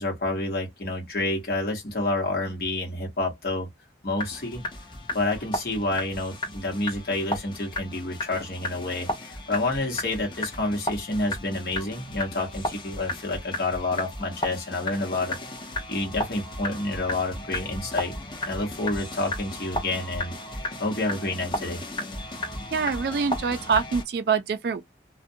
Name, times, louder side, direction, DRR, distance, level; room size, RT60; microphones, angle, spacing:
voice 1, 0.0-3.7 4.0-4.6 5.1-15.4 15.9-18.1 18.4-20.3 20.8-21.8, left 2 dB, 55° left, 1.0 m, -29 dB
sound 1, 4.2-24.0, left 1 dB, 25° left, 0.8 m, -34 dB
voice 2, 22.7-24.8, right 5 dB, 60° right, 0.3 m, -25 dB
2.5 x 2.1 x 2.6 m
head